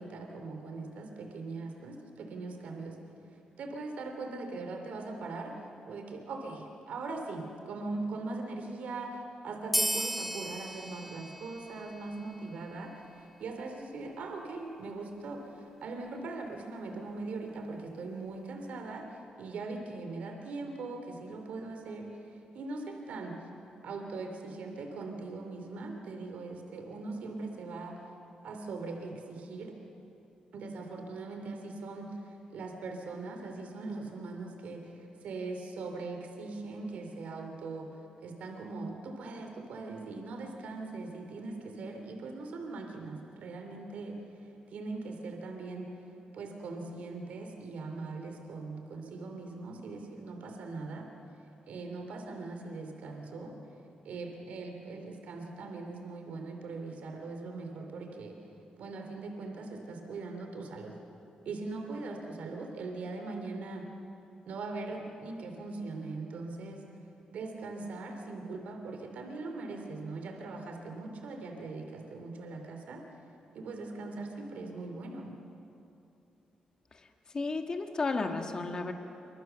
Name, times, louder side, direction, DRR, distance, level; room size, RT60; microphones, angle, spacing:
voice 1, 0.0-3.0 3.6-5.5 5.9-19.1 19.4-22.1 22.5-23.3 23.8-27.9 28.4-29.7 30.5-32.2 32.5-37.9 38.2-44.2 44.7-45.9 46.3-51.1 51.7-53.6 54.0-58.4 58.8-61.0 61.4-63.9 64.5-66.8 67.3-73.0 73.5-75.3, right 3 dB, 70° right, 4 dB, 2.9 m, -40 dB
sound 1, 9.7-12.8, right 1 dB, ahead, 1.1 m, -35 dB
voice 2, 77.3-78.9, left 3 dB, 30° left, 5 dB, 1.6 m, -32 dB
27.0 x 24.5 x 6.9 m, 2.8 s
wide cardioid pair, 160°, 3 cm